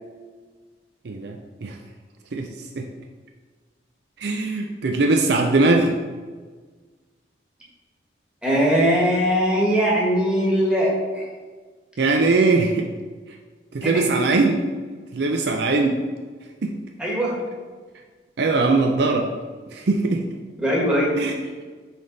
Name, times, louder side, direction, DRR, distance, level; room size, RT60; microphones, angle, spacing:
voice 1, 1.1-1.7 2.3-2.5 2.8-2.9 4.2-5.9 12.0-12.9 13.7-14.6 15.1-16.0 16.6-16.7 18.4-19.3 19.7-20.2 21.2-21.4, right 3 dB, 65° right, 3 dB, 0.5 m, -20 dB
voice 2, 8.4-10.9 13.8-14.2 17.0-17.4 20.6-21.1, equal, 5° right, -5 dB, 1.6 m, -20 dB
8.9 x 3.4 x 4.0 m, 1.4 s
head